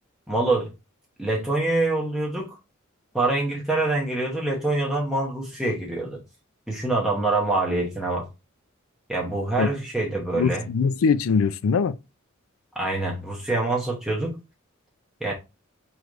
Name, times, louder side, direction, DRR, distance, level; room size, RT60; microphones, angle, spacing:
voice 1, 0.3-0.7 1.2-2.6 3.1-6.2 6.7-8.3 9.1-10.6 12.7-14.4 15.2-15.3, right 2 dB, 5° right, 0.8 m, -25 dB
voice 2, 10.4-12.0, left 5 dB, 70° left, 0.4 m, -22 dB
4.8 x 3.1 x 2.4 m
head